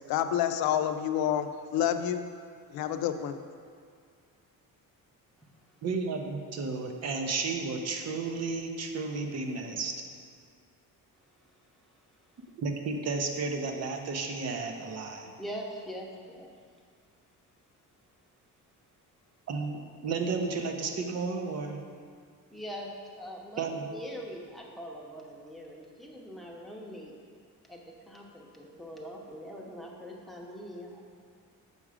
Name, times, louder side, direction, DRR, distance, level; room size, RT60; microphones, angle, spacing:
voice 1, 0.1-2.2 2.7-3.4, left 10 dB, 85° left, 9 dB, 0.5 m, -28 dB
voice 2, 5.8-10.0 12.6-15.3 19.5-21.8 23.6-23.9, right 4 dB, 45° right, 4 dB, 0.8 m, -33 dB
voice 3, 15.4-16.5 22.5-22.9 23.2-27.1 27.7-31.0, equal, ahead, -1 dB, 0.8 m, -42 dB
6.9 x 4.9 x 4.9 m, 2.1 s
cardioid pair, 140°, 35 cm